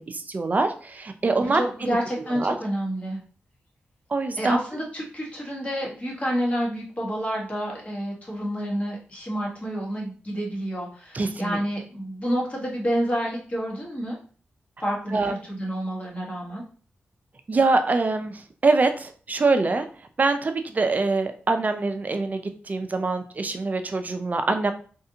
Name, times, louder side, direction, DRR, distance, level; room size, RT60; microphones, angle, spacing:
voice 1, 0.0-2.0 2.3-2.5 4.1-4.6 11.1-11.6 15.1-15.3 17.5-19.9 20.2-24.7, right 3 dB, 40° right, 8 dB, 0.4 m, -24 dB
voice 2, 1.4-3.2 4.4-14.2 14.8-16.6, equal, 35° left, -2 dB, 1.3 m, -29 dB
3.3 x 2.6 x 2.7 m, 0.42 s
cardioid pair, 65°, 4 cm